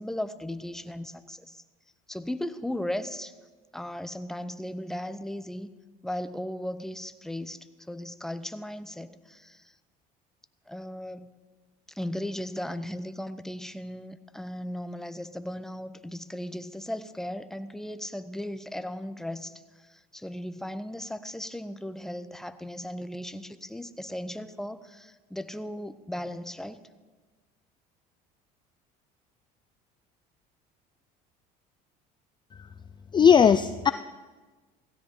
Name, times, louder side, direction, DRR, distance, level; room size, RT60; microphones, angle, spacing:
voice 1, 0.0-1.6 2.1-3.3 3.7-5.7 6.0-9.7 10.7-11.3 11.9-26.8, left 1 dB, ahead, 11 dB, 0.9 m, -36 dB
voice 2, 33.1-33.9, left 7 dB, 25° left, 13 dB, 0.4 m, -18 dB
16.5 x 16.0 x 3.9 m, 1.3 s
supercardioid pair, 85°, 19 cm